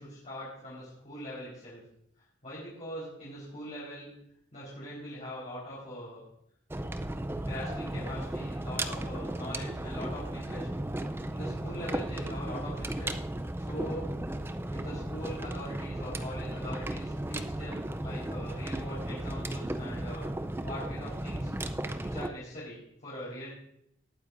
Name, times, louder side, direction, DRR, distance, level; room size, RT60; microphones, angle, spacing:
voice 1, 0.0-1.8 2.4-4.1 4.5-6.2 7.3-10.7 11.3-13.1 13.6-14.1 14.7-20.3 20.6-23.5, equal, 40° left, -8 dB, 4.2 m, -42 dB
sound 1, 6.7-22.3, right 1 dB, 10° right, 0.4 m, -35 dB
19.0 x 9.3 x 2.6 m, 0.73 s
head